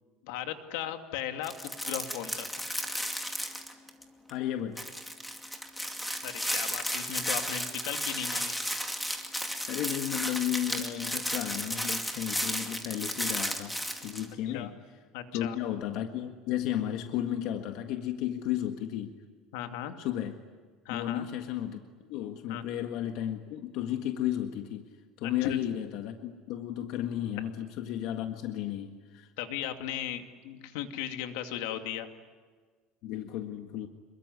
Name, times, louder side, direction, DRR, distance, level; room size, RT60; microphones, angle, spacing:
voice 1, 0.2-1.5 1.8-2.6 6.2-8.6 14.5-14.7 15.1-15.6 19.5-19.9 20.8-21.3 22.5-22.6 25.2-25.7 29.4-32.1, left 11 dB, 85° left, 6 dB, 2.5 m, -37 dB
sound 1, 1.4-4.0 4.3-4.4 4.8-14.3, equal, ahead, 2.4 m, -34 dB
voice 2, 4.3-4.8 9.7-14.7 15.3-19.2 20.0-20.3 20.9-21.8 22.1-24.9 25.2-29.3 33.0-33.9, left 11 dB, 60° left, 5 dB, 1.7 m, -33 dB
27.5 x 22.5 x 9.6 m, 1.5 s
cardioid pair, 155°, 0 cm